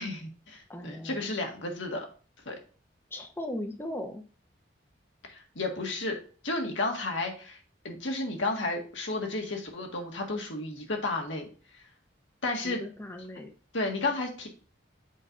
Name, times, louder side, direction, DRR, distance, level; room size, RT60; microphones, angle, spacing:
voice 1, 0.0-2.1 2.4-2.6 5.2-6.2 6.4-7.6 7.8-11.5 11.7-11.8 12.4-12.8 13.7-14.5, left 2 dB, 80° left, 2 dB, 1.6 m, -32 dB
voice 2, 0.7-1.3 3.1-4.2 12.6-13.5, left 1 dB, 10° left, 5 dB, 0.7 m, -38 dB
7.5 x 5.4 x 2.6 m, 0.39 s
head